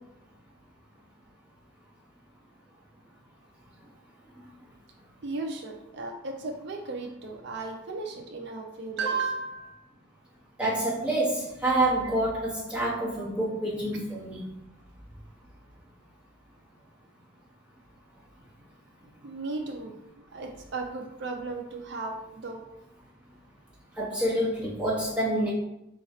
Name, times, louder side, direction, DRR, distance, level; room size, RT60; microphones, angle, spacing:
voice 1, 5.2-9.8 19.2-19.9 20.3-22.6, right 3 dB, 55° right, 3 dB, 0.4 m, -35 dB
voice 2, 10.6-14.5 24.0-25.5, right 1 dB, 5° right, -8 dB, 1.3 m, -27 dB
4.3 x 2.3 x 4.2 m, 0.84 s
head